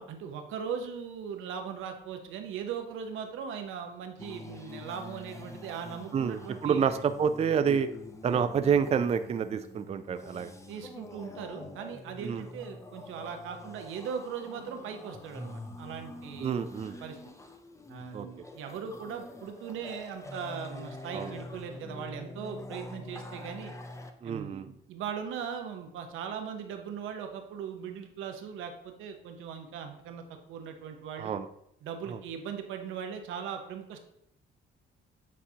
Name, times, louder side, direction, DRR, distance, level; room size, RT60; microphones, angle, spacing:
voice 1, 0.0-6.8 8.3-8.4 10.7-16.5 17.0-17.2 17.9-23.7 24.2-31.3 31.8-34.0, right 7 dB, 90° right, 5 dB, 0.8 m, -39 dB
sound 1, 4.2-24.1, left 2 dB, 15° left, 0.6 m, -45 dB
voice 2, 6.1-7.9 8.2-10.5 12.2-12.4 16.4-17.0 18.1-18.3 21.1-21.3 24.2-24.7 31.2-31.5 32.1-32.2, right 7 dB, 35° right, 10 dB, 0.4 m, -28 dB
8.4 x 4.1 x 2.8 m, 0.76 s
cardioid pair, 90°, 20 cm